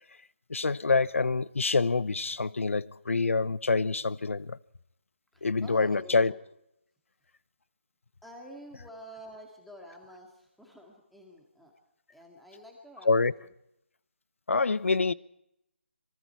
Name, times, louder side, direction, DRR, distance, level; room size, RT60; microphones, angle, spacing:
voice 1, 0.5-4.6 5.4-6.3 13.1-13.3 14.5-15.1, left 4 dB, 80° left, 0.9 m, -26 dB
voice 2, 5.3-6.4 8.2-11.7 12.1-13.5, equal, ahead, 2.1 m, -49 dB
26.0 x 24.0 x 4.7 m
hypercardioid pair, 175°, 7 cm